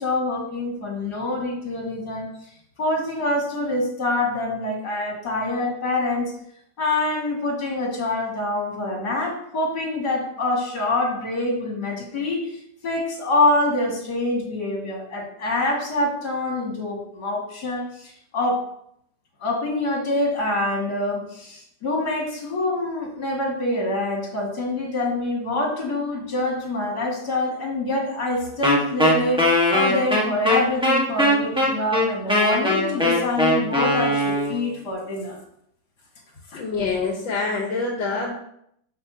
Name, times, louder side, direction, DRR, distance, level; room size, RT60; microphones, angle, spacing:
voice 1, 0.0-2.3 2.8-6.3 6.8-18.7 19.4-35.4 36.5-36.6, left 2 dB, 60° left, -2 dB, 2.7 m, -25 dB
Wind instrument woodwind instrument, 28.6-34.7, left 1 dB, 5° right, 1.2 m, -20 dB
voice 2, 36.5-38.3, left 4 dB, 80° left, 0 dB, 1.9 m, -26 dB
12.0 x 5.7 x 2.8 m, 0.73 s
omnidirectional pair, 2.0 m